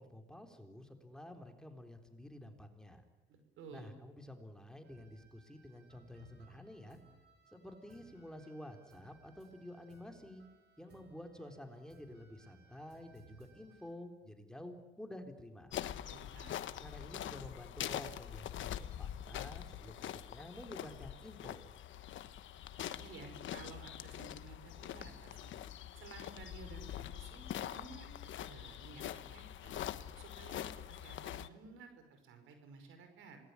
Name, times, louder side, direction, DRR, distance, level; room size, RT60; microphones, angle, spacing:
voice 1, 0.0-3.0 3.7-7.0 7.5-10.4 10.8-15.7 16.8-21.7, left 1 dB, 5° left, 5 dB, 3.8 m, -51 dB
voice 2, 3.3-3.9 16.0-16.6 22.8-25.5 26.0-29.8 30.2-33.4, right 4 dB, 85° right, 7 dB, 5.4 m, -54 dB
sound 1, 4.8-13.9, right 4 dB, 55° right, 6.8 m, -64 dB
sound 2, 15.7-31.5, left 11 dB, 75° left, 1.2 m, -44 dB
27.0 x 20.0 x 9.9 m, 1.1 s
cardioid pair, 90°, 20 cm